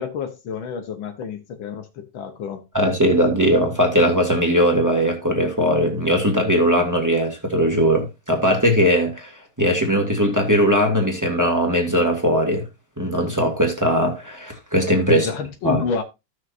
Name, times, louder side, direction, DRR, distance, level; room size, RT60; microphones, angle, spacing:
voice 1, 0.0-2.6 15.1-16.0, left 6 dB, 85° left, 1.0 m, -29 dB
voice 2, 2.7-9.3 9.6-12.6 13.0-15.3 15.6-15.8, equal, 10° right, 1.2 m, -19 dB
15.5 x 6.4 x 2.5 m
omnidirectional pair, 3.7 m